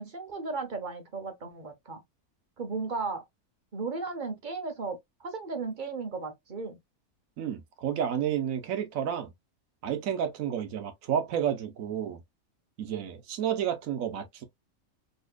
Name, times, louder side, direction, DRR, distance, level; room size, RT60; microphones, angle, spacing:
voice 1, 0.0-2.0 2.6-3.2 3.7-6.8, right 4 dB, 45° right, 0.7 m, -35 dB
voice 2, 7.4-9.3 9.8-12.2 12.8-14.4, right 9 dB, 70° right, 1.1 m, -31 dB
4.1 x 2.9 x 2.2 m
omnidirectional pair, 1.6 m